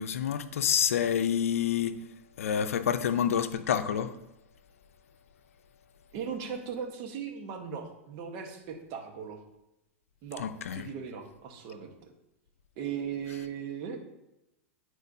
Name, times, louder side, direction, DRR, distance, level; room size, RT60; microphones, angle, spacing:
voice 1, 0.0-1.9 2.4-4.1 10.4-10.9, left 8 dB, 80° left, 0.5 m, -28 dB
voice 2, 6.1-9.4 10.2-11.9 12.8-14.0, right 7 dB, 50° right, 1.2 m, -38 dB
10.0 x 4.5 x 2.7 m
hypercardioid pair, 110°, 7 cm